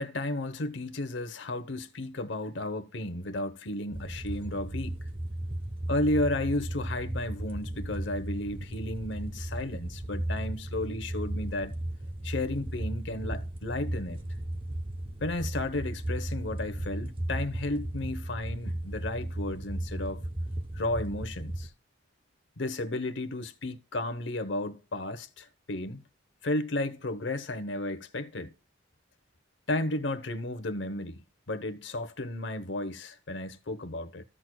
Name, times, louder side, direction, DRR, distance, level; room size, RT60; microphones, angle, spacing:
voice 1, 0.0-5.0 5.9-11.7 12.2-14.2 15.2-20.2 20.8-21.7 22.6-26.0 26.4-28.5 29.7-31.2 31.5-34.2, left 1 dB, 65° left, 0.9 m, -33 dB
sound 1, 3.9-21.7, right 1 dB, 25° right, 0.8 m, -35 dB
15.0 x 6.1 x 2.3 m
head